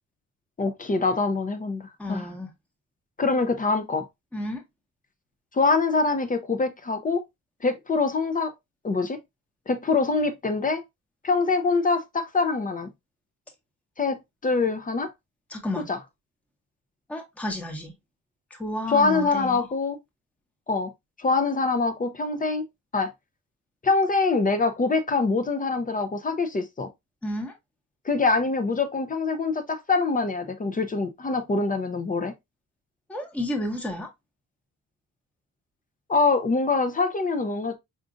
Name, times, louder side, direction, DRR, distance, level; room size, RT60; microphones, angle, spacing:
voice 1, 0.6-1.8 2.1-2.3 3.2-4.0 5.5-7.2 7.6-8.5 8.8-9.2 9.7-10.8 11.2-12.9 14.0-15.1 15.9-16.0 18.9-20.0 20.7-20.9 21.2-22.7 22.9-23.1 23.8-26.9 28.1-32.3 36.1-37.8, left 3 dB, 25° left, 0.5 m, -24 dB
voice 2, 2.0-2.5 4.3-4.6 15.5-15.9 17.1-17.9 18.5-19.7 27.2-27.5 33.1-34.1, left 1 dB, 5° left, 0.8 m, -31 dB
4.9 x 2.5 x 2.4 m
cardioid pair, 140°, 34 cm